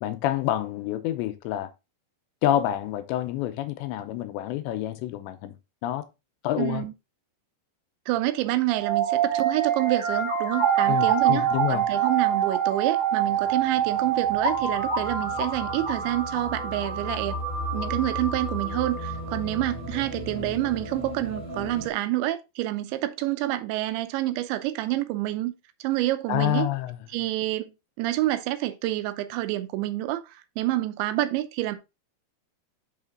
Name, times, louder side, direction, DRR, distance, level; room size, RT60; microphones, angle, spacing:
voice 1, 0.0-1.7 2.4-5.6 5.8-6.0 6.4-6.8 10.9-11.8 26.3-27.0, left 13 dB, 90° left, 2.9 m, -27 dB
voice 2, 6.6-6.9 8.1-17.4 17.7-25.5 25.8-26.7 27.1-27.7 28.0-31.8, right 15 dB, 90° right, 3.0 m, -28 dB
sound 1, 8.7-19.6, right 8 dB, 35° right, 2.1 m, -26 dB
sound 2, 13.2-21.9, equal, 20° left, 1.1 m, -37 dB
6.5 x 5.8 x 3.7 m
omnidirectional pair, 5.1 m